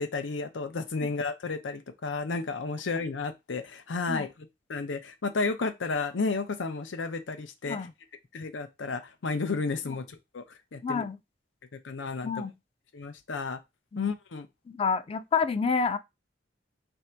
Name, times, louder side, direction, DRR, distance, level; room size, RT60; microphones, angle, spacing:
voice 1, 0.0-4.3 4.7-7.8 8.3-10.4 10.7-11.0 11.8-12.3 12.9-13.6 14.0-14.5, left 4 dB, 85° left, 0.6 m, -32 dB
voice 2, 10.8-11.2 12.2-12.5 13.9-14.1 14.7-16.0, left 5 dB, 30° left, 0.3 m, -28 dB
3.3 x 2.7 x 4.4 m
head